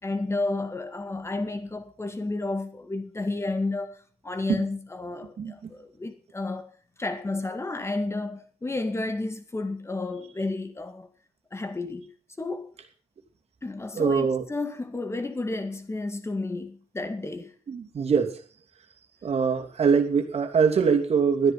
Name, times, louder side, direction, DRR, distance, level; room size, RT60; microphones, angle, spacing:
voice 1, 0.0-4.0 4.2-6.7 7.0-11.1 11.5-12.1 12.4-12.7 13.6-17.5, left 2 dB, 20° left, 2.0 m, -31 dB
voice 2, 14.0-14.4 17.7-18.4 19.2-21.5, right 6 dB, 50° right, 2.7 m, -23 dB
13.0 x 10.0 x 5.8 m
cardioid pair, 80°, 14 cm